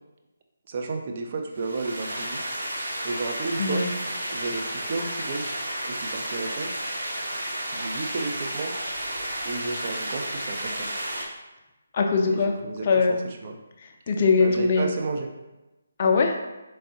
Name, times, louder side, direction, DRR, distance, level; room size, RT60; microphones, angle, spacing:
voice 1, 0.7-2.4 3.0-3.8 4.3-5.5 5.9-6.7 7.7-8.7 9.4-10.9 12.3-13.6 14.4-15.3, right 3 dB, 40° right, 3 dB, 0.5 m, -32 dB
sound 1, 1.5-11.2, right 1 dB, 70° right, 0.9 m, -32 dB
voice 2, 3.6-3.9 11.9-12.5 12.8-13.2 13.8-14.9 16.0-16.3, left 4 dB, 35° left, 2 dB, 0.5 m, -21 dB
4.2 x 3.2 x 2.8 m, 1.0 s
figure-of-eight pair, 145°, 0 cm